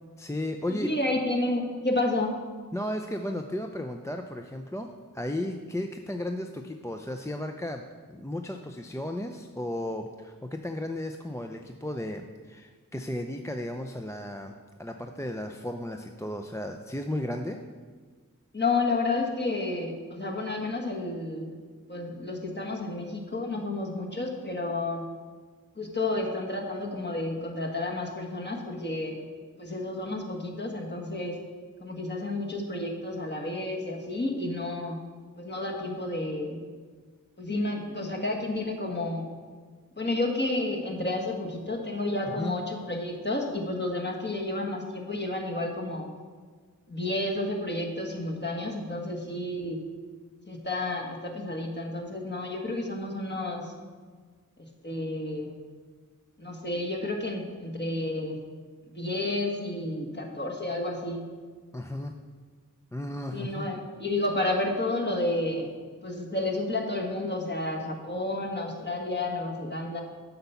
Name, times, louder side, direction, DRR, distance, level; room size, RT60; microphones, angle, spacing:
voice 1, 0.2-0.9 2.7-4.9 5.1-7.8 8.1-14.5 14.8-17.6 42.4-42.5 61.7-62.1 62.9-63.7, left 1 dB, 10° left, 4 dB, 0.5 m, -34 dB
voice 2, 0.7-2.4 18.5-21.5 21.9-25.0 25.8-29.2 29.6-31.4 31.8-35.0 35.4-36.6 37.4-39.2 40.0-46.1 46.9-49.8 50.5-53.7 54.8-55.5 56.4-58.4 58.9-61.2 63.3-65.7 66.0-70.0, left 2 dB, 30° left, 0 dB, 1.5 m, -31 dB
7.8 x 5.6 x 7.0 m, 1.5 s
wide cardioid pair, 45°, 34 cm